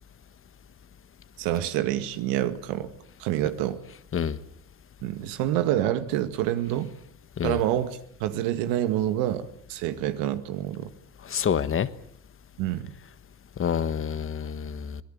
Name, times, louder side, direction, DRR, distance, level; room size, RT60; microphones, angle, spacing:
voice 1, 1.4-2.9 3.2-3.8 5.0-6.9 7.4-10.9 12.6-12.9, right 12 dB, 90° right, 10 dB, 2.0 m, -27 dB
voice 2, 11.3-11.9 13.6-15.0, left 8 dB, 40° left, 14 dB, 1.4 m, -27 dB
25.0 x 18.5 x 9.4 m, 0.70 s
cardioid pair, 95°, 32 cm